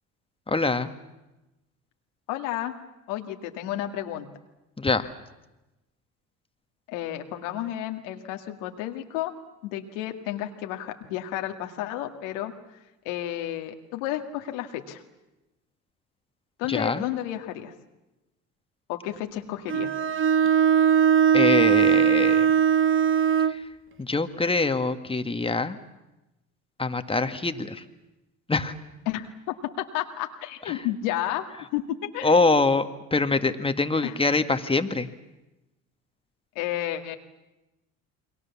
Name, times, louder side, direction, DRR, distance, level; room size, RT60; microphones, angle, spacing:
voice 1, 0.5-0.9 4.8-5.1 16.7-17.0 21.3-22.5 23.5-23.6 24.0-25.8 26.8-27.8 28.5-28.7 30.7-30.8 32.2-35.1, left 3 dB, 15° left, 9 dB, 1.8 m, -24 dB
voice 2, 2.3-2.7 3.1-4.3 6.9-9.3 9.6-12.5 13.1-15.0 16.6-17.7 18.9-19.9 29.1-29.3 29.8-31.4 31.7-31.8 32.1-32.4 34.0-34.1 36.6-37.2, left 13 dB, 80° left, 5 dB, 2.1 m, -31 dB
Bowed string instrument, 19.7-23.6, right 8 dB, 35° right, 1.0 m, -20 dB
29.0 x 22.5 x 7.2 m, 1.0 s
hypercardioid pair, 70°, 37 cm